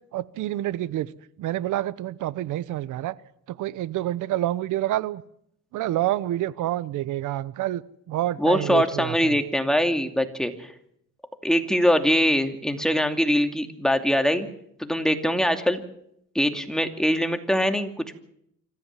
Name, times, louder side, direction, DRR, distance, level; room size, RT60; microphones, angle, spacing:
voice 1, 0.1-1.1 1.4-3.2 3.5-5.2 5.7-9.4, right 14 dB, 85° right, 18 dB, 1.0 m, -28 dB
voice 2, 8.4-10.7 11.4-14.5 14.8-15.8 16.3-18.1, equal, ahead, 6 dB, 2.6 m, -23 dB
26.0 x 14.5 x 7.5 m, 0.72 s
cardioid pair, 90°, 30 cm